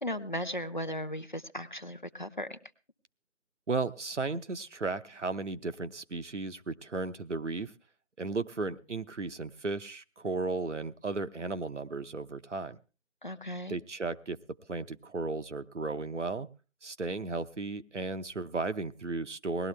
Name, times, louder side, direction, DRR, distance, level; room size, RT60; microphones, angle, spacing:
voice 1, 0.0-2.6 13.2-13.8, equal, 40° left, 9 dB, 0.8 m, -36 dB
voice 2, 3.7-7.7 8.2-12.8 13.7-14.4 14.7-16.5 16.8-19.7, right 3 dB, 80° right, 12 dB, 1.0 m, -35 dB
18.5 x 12.5 x 3.3 m, 0.34 s
figure-of-eight pair, 180°, 36 cm